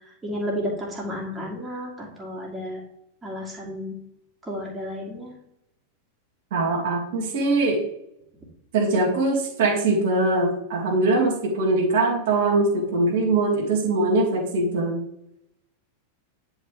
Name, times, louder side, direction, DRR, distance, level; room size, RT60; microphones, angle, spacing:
voice 1, 0.2-2.8 3.2-4.0 4.4-5.4, equal, 15° right, -3 dB, 2.6 m, -32 dB
voice 2, 6.5-7.8 8.7-15.0, right 2 dB, 55° right, -2 dB, 2.3 m, -22 dB
9.7 x 5.2 x 3.4 m, 0.79 s
figure-of-eight pair, 90°, 0 cm